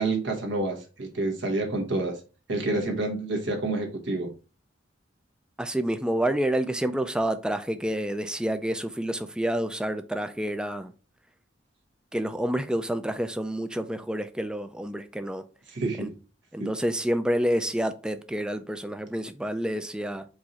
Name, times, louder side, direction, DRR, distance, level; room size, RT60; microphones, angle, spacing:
voice 1, 0.0-2.2 2.5-4.3 15.7-16.1 16.6-16.7, right 2 dB, 65° right, 1.2 m, -28 dB
voice 2, 5.6-10.9 12.1-15.5 16.0-16.1 16.5-20.3, right 1 dB, 5° right, 0.3 m, -28 dB
4.7 x 2.6 x 4.1 m
head